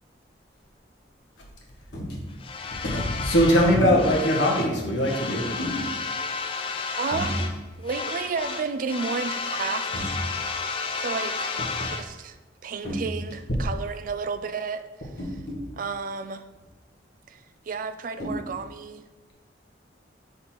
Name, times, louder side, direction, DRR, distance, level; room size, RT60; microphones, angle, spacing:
sound 1, 1.9-2.2 3.8-4.1 5.6-5.9 7.1-7.4 7.7-8.0 8.4-8.5 9.9-10.2 12.8-13.5 15.2-15.6 16.6-16.7 18.2-18.4, equal, 55° left, 1.9 m, -32 dB
sound 2, 2.4-4.7 5.0-7.6 7.8-12.1, left 4 dB, 30° left, 0.4 m, -32 dB
voice 1, 2.7-5.5 11.8-11.9, equal, 85° left, -2 dB, 1.3 m, -21 dB
voice 2, 7.0-7.5 7.8-10.2 11.0-11.5 11.9-12.4 12.6-14.9 15.8-16.4 17.3-19.1, right 5 dB, 45° right, 10 dB, 0.3 m, -32 dB
4.3 x 4.0 x 5.5 m, 1.2 s
head